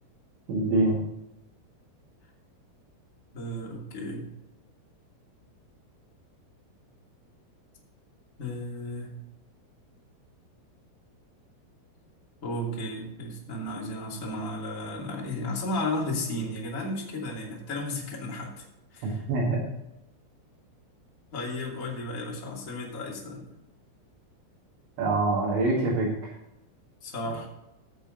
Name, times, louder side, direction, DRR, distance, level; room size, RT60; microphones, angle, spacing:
voice 1, 0.5-1.0 19.0-19.6 25.0-26.1, right 2 dB, 65° right, -5 dB, 4.2 m, -25 dB
voice 2, 3.3-4.3 8.4-9.2 12.4-18.6 18.9-19.2 21.3-23.5 27.0-27.5, left 1 dB, 30° left, -3 dB, 1.6 m, -34 dB
17.0 x 6.8 x 3.9 m, 0.90 s
omnidirectional pair, 6.0 m